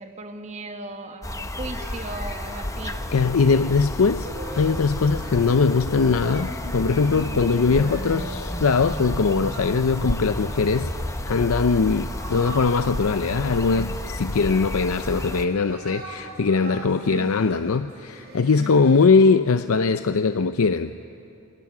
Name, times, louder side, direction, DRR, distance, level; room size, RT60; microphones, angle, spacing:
voice 1, 0.0-3.1 17.1-17.3 18.4-18.8, right 2 dB, 30° right, 6 dB, 1.4 m, -37 dB
sound 1, 1.2-15.5, left 1 dB, 15° left, 0.8 m, -32 dB
sound 2, 1.5-19.2, right 2 dB, 50° right, 4.4 m, -42 dB
sound 3, 2.5-12.6, equal, 15° right, 6.5 m, -38 dB
voice 2, 3.1-4.3 4.5-10.9 11.3-20.9, left 4 dB, 75° left, 10 dB, 0.5 m, -21 dB
29.0 x 26.0 x 6.1 m, 2.7 s
head